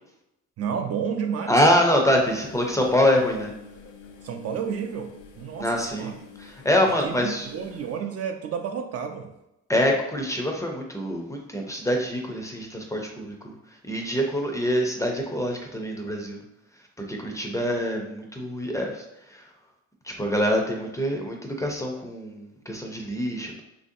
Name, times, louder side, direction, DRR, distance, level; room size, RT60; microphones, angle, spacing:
voice 1, 0.6-1.6 4.2-6.1 6.8-9.3, right 7 dB, 55° right, 5 dB, 0.4 m, -31 dB
voice 2, 1.5-3.5 5.6-7.5 9.7-13.5 13.8-16.4 17.0-19.4 20.0-23.6, equal, 10° left, 1 dB, 0.5 m, -25 dB
sound 1, 2.2-8.0, left 5 dB, 90° left, 0.5 m, -48 dB
3.1 x 2.6 x 2.6 m, 0.88 s
cardioid pair, 90°, 30 cm